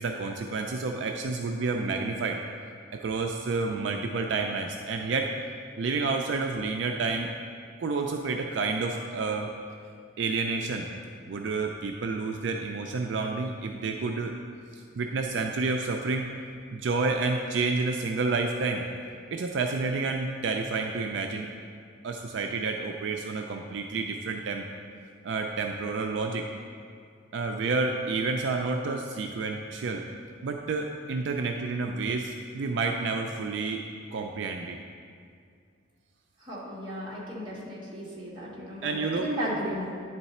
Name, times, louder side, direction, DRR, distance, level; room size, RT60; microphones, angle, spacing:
voice 1, 0.0-2.4 2.9-5.3 5.8-7.3 7.8-9.5 10.2-10.9 11.3-14.3 14.7-16.3 16.7-18.8 19.3-21.5 22.0-24.6 25.2-26.5 27.3-30.0 30.4-33.8 34.1-34.8 38.8-39.3, right 4 dB, 65° right, 3 dB, 0.4 m, -29 dB
voice 2, 36.4-39.9, equal, 25° right, -6 dB, 1.3 m, -35 dB
9.9 x 3.9 x 4.2 m, 2.2 s
head